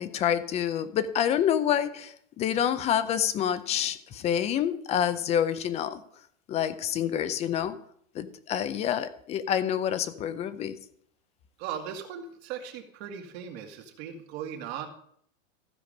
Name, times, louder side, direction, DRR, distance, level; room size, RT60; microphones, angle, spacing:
voice 1, 0.0-6.0 6.5-7.8 8.1-10.8, left 9 dB, 15° left, 13 dB, 0.4 m, -27 dB
voice 2, 11.6-14.9, right 8 dB, 55° right, 3 dB, 2.0 m, -38 dB
15.0 x 5.1 x 5.0 m, 0.66 s
supercardioid pair, 135°, 39 cm